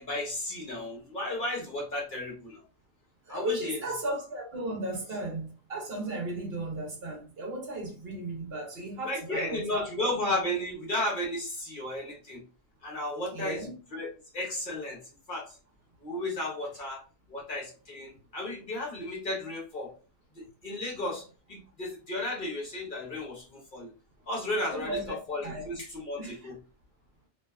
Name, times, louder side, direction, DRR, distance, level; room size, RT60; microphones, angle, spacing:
voice 1, 0.0-2.6 3.3-3.8 9.0-12.4 12.8-13.7 13.9-14.1 14.3-15.0 15.3-15.6 16.0-17.0 17.3-19.9 20.4-23.9 24.3-26.6, left 1 dB, 50° left, 0.9 m, -34 dB
voice 2, 3.2-10.1 13.3-13.7 24.7-25.7 26.2-26.4, right 1 dB, 60° right, 1.0 m, -35 dB
2.6 x 2.2 x 2.2 m
omnidirectional pair, 1.2 m